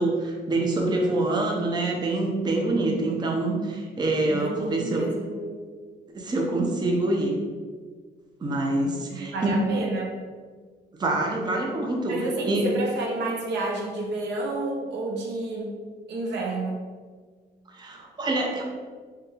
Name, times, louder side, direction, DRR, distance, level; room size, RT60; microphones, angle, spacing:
voice 1, 0.0-5.1 6.1-7.3 8.4-9.5 11.0-12.2 12.4-12.7 17.7-18.6, right 2 dB, 25° right, 0 dB, 0.5 m, -26 dB
voice 2, 4.3-5.7 9.1-10.1 12.1-15.8 16.1-16.9, right 2 dB, 80° right, 0 dB, 0.7 m, -30 dB
3.4 x 2.2 x 3.1 m, 1.5 s
cardioid pair, 105°, 18 cm